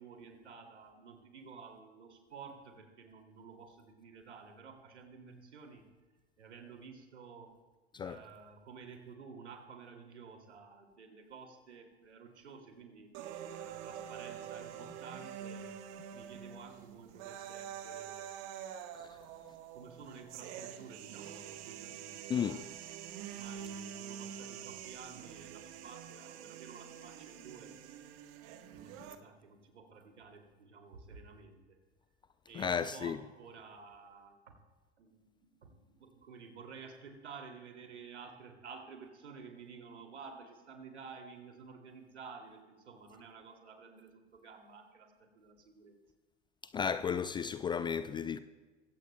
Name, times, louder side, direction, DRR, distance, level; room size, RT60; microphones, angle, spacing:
voice 1, 0.0-5.8 6.4-7.6 8.0-13.1 13.6-15.8 16.1-18.5 19.0-22.6 23.2-27.8 28.7-31.8 32.5-34.5 35.0-46.0, right 5 dB, 80° right, 2.6 m, -52 dB
sound 1, 13.1-29.2, right 9 dB, 50° right, 1.3 m, -46 dB
voice 2, 32.5-33.2 46.7-48.4, left 7 dB, 15° left, 0.3 m, -33 dB
22.0 x 16.5 x 2.2 m
figure-of-eight pair, 85°, 34 cm